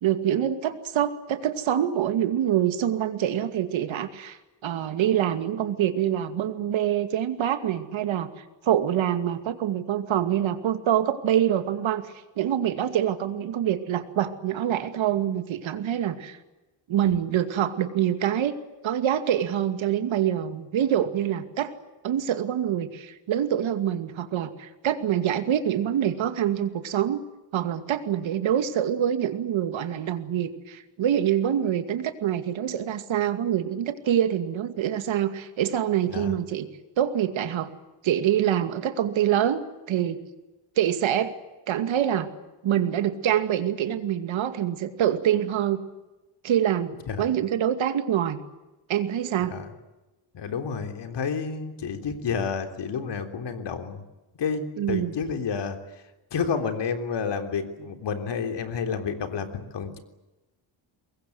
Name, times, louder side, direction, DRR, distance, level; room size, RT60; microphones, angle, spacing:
voice 1, 0.0-4.4 4.6-8.3 8.6-16.4 16.9-18.6 18.8-21.7 22.0-27.2 27.5-36.7 37.0-37.7 38.0-40.2 40.8-41.3 41.7-42.3 42.6-45.8 46.4-48.4 48.9-49.5 54.8-55.1, right 10 dB, 85° right, 9 dB, 2.4 m, -25 dB
voice 2, 50.3-54.0 54.4-55.8 56.3-60.0, left 6 dB, 65° left, 6 dB, 3.6 m, -30 dB
24.5 x 21.0 x 9.6 m, 1.1 s
cardioid pair, 140°, 46 cm